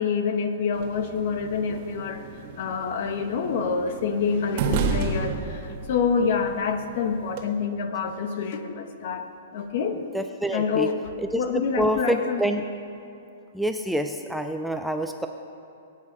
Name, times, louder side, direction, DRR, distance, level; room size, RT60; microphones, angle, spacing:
voice 1, 0.0-2.3 2.5-9.3 9.5-10.0 10.5-12.4, left 5 dB, 50° left, 7 dB, 1.5 m, -27 dB
sound 1, 0.7-7.4, right 4 dB, 40° right, 1.6 m, -32 dB
voice 2, 10.1-10.9 11.2-12.6 13.5-15.3, right 1 dB, ahead, 5 dB, 0.5 m, -27 dB
23.0 x 9.7 x 5.4 m, 2.8 s
hypercardioid pair, 160°, 0 cm